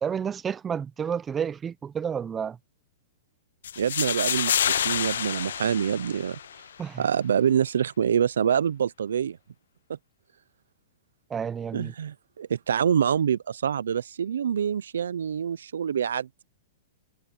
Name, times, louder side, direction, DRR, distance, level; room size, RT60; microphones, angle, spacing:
voice 1, 0.0-2.6 6.8-7.0 11.3-11.9, right 7 dB, 20° right, 0.7 m, -30 dB
sound 1, 3.6-6.7, left 9 dB, 75° left, 0.3 m, -28 dB
voice 2, 3.8-6.4 7.0-9.4 9.9-10.0 11.7-16.3, right 8 dB, 80° right, 0.7 m, -26 dB
hypercardioid pair, 125°, 0 cm